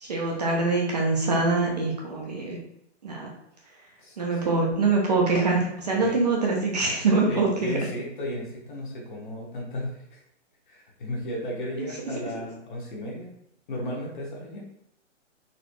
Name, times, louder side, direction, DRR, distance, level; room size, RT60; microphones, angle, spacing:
voice 1, 0.0-2.6 3.0-3.3 4.2-7.8 11.8-12.1, right 3 dB, 35° right, -2 dB, 0.7 m, -24 dB
voice 2, 4.0-4.4 5.9-6.1 7.3-10.2 10.7-13.4 13.7-14.6, left 1 dB, 40° left, -2 dB, 1.2 m, -34 dB
4.1 x 3.2 x 3.1 m, 0.80 s
hypercardioid pair, 175°, 37 cm